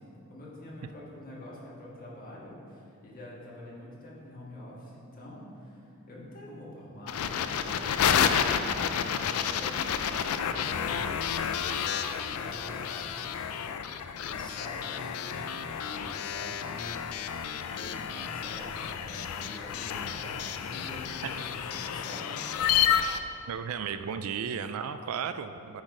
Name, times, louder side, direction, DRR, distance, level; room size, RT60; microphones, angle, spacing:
voice 1, 0.0-13.2 14.1-17.3 17.7-22.7, left 1 dB, 40° left, -5 dB, 1.7 m, -45 dB
sound 1, 7.1-23.2, left 8 dB, 85° left, 0.4 m, -30 dB
voice 2, 23.5-25.8, right 7 dB, 75° right, 10 dB, 0.4 m, -34 dB
10.5 x 4.1 x 4.8 m, 2.7 s
head